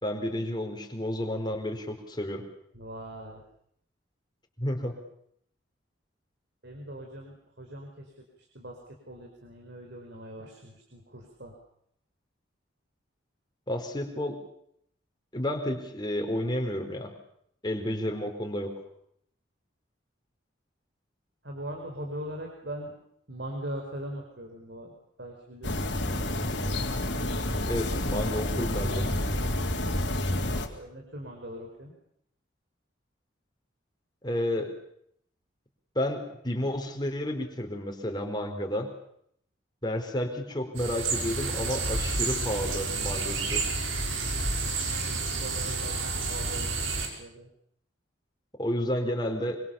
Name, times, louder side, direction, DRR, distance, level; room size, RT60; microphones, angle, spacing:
voice 1, 0.0-2.4 4.6-4.9 13.7-14.4 15.3-17.1 17.6-18.7 27.7-29.1 34.2-34.7 35.9-38.9 39.8-43.6 48.6-49.6, left 1 dB, 20° left, 3 dB, 4.3 m, -31 dB
voice 2, 2.7-3.4 6.6-11.6 21.4-23.0 23.3-26.8 30.6-31.9 45.0-47.5, right 1 dB, 60° right, 1 dB, 5.0 m, -41 dB
sound 1, 25.6-30.7, left 1 dB, 65° left, 3.6 m, -29 dB
sound 2, 40.8-47.1, right 3 dB, 85° right, 6.4 m, -30 dB
26.0 x 25.0 x 7.2 m, 0.71 s
head